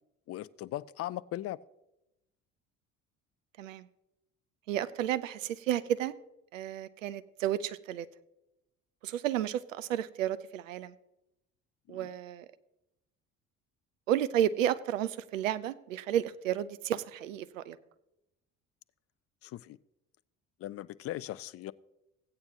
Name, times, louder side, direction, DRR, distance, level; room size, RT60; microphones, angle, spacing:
voice 1, 0.3-1.6 11.9-12.1 19.4-19.8 20.6-21.7, left 14 dB, 40° left, 0.4 m, -39 dB
voice 2, 4.7-6.1 6.5-8.1 9.0-10.9 11.9-12.5 14.1-17.8, right 11 dB, 85° right, 0.5 m, -32 dB
16.0 x 8.8 x 2.8 m
hypercardioid pair, 60°, 37 cm